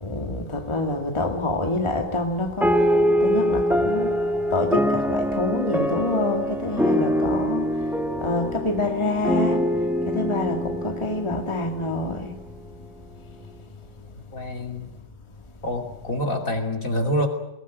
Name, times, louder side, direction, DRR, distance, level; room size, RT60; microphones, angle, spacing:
voice 1, 0.0-2.7 3.2-4.1 4.5-7.7 8.2-9.6 10.0-12.4, left 2 dB, 15° left, 4 dB, 2.1 m, -26 dB
sound 1, 2.6-12.4, equal, ahead, 1.2 m, -24 dB
voice 2, 14.3-14.9 15.6-17.3, equal, 45° left, 4 dB, 3.1 m, -26 dB
22.0 x 18.0 x 9.2 m, 0.91 s
omnidirectional pair, 2.0 m